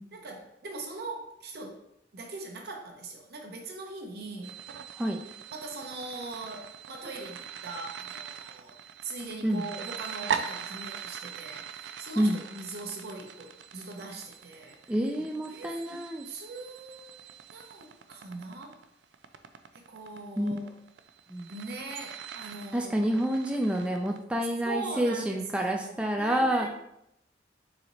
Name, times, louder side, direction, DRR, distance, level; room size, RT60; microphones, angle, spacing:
voice 1, 0.1-1.8 2.1-4.6 5.5-17.2 17.5-18.8 19.7-20.7 21.5-23.1 24.6-26.7, right 3 dB, 65° right, 2 dB, 0.9 m, -41 dB
sound 1, 4.4-24.2, right 7 dB, 80° right, 0.4 m, -41 dB
voice 2, 14.9-16.2 20.4-20.7 21.3-21.5 22.7-26.7, right 1 dB, 5° right, 1 dB, 0.3 m, -28 dB
4.2 x 2.8 x 4.1 m, 0.78 s
head